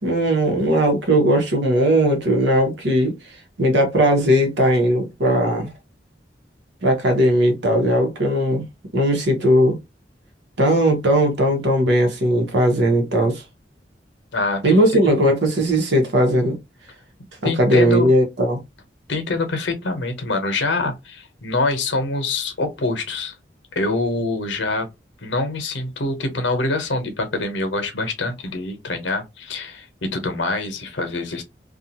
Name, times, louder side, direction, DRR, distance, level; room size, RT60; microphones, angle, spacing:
voice 1, 0.0-3.1 3.6-5.7 6.8-8.6 8.9-9.8 10.6-13.4 14.6-16.6 17.4-18.6, equal, 80° right, 1.0 m, -18 dB
voice 2, 14.3-14.8 17.4-18.1 19.1-23.3 23.7-24.9 25.2-31.4, left 3 dB, 90° left, 0.8 m, -25 dB
2.5 x 2.3 x 2.8 m
head